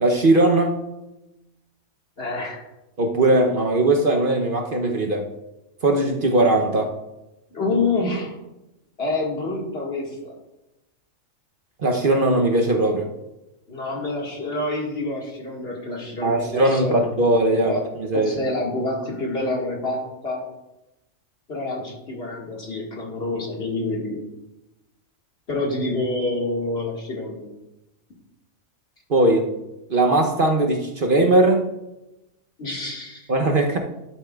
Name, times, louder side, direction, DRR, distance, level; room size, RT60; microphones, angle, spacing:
voice 1, 0.0-0.8 3.0-5.3 5.8-6.9 11.8-13.1 16.2-17.8 18.1-18.3 29.1-29.5 29.9-31.7 33.3-33.8, right 2 dB, 45° right, 2 dB, 0.8 m, -19 dB
voice 2, 2.2-2.6 7.5-8.3 9.0-10.3 13.7-17.1 17.5-17.8 18.1-20.4 21.5-24.2 25.5-27.5 32.6-33.3, left 2 dB, 45° left, -2 dB, 2.1 m, -27 dB
12.0 x 8.2 x 2.3 m, 0.95 s
omnidirectional pair, 1.5 m